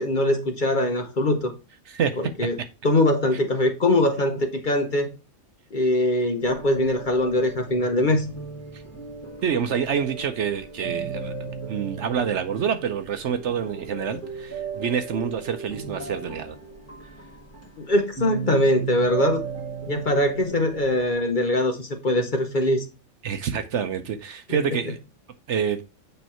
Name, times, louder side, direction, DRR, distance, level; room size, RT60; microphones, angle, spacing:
voice 1, 0.0-1.5 2.4-2.6 2.8-5.1 5.7-8.3 17.8-19.4 19.9-22.8 24.5-24.6, left 1 dB, 40° left, 0.9 m, -22 dB
voice 2, 1.9-2.2 9.4-16.6 23.2-25.0 25.5-25.8, right 7 dB, 65° right, 0.9 m, -27 dB
sound 1, 6.4-21.1, right 5 dB, 10° left, 1.3 m, -36 dB
8.4 x 3.2 x 4.3 m
omnidirectional pair, 1.4 m